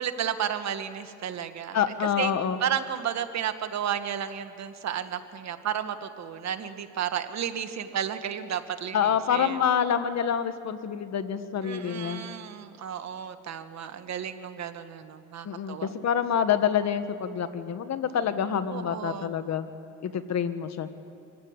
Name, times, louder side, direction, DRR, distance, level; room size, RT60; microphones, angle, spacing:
voice 1, 0.0-2.3 2.6-9.6 11.6-15.9 18.7-19.3, right 9 dB, 65° right, 9 dB, 1.5 m, -33 dB
voice 2, 1.7-2.6 8.9-12.2 15.4-19.7 20.0-20.9, left 8 dB, 60° left, 10 dB, 1.6 m, -27 dB
25.0 x 15.5 x 9.6 m, 2.6 s
cardioid pair, 90°, 30 cm